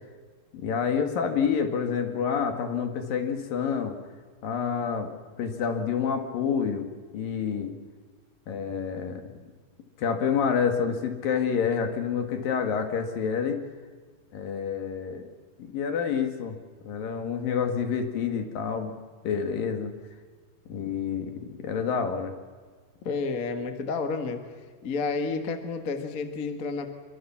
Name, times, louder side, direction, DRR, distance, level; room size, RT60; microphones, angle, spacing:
voice 1, 0.5-4.0 4.4-5.1 5.4-7.7 8.5-9.2 10.0-13.6 14.3-15.2 15.6-16.6 16.8-18.9 19.2-19.9 20.7-22.3, left 6 dB, 65° left, 6 dB, 3.5 m, -28 dB
voice 2, 23.0-24.4 24.8-26.9, left 4 dB, 45° left, 7 dB, 1.1 m, -30 dB
26.0 x 24.5 x 7.4 m, 1.5 s
omnidirectional pair, 4.6 m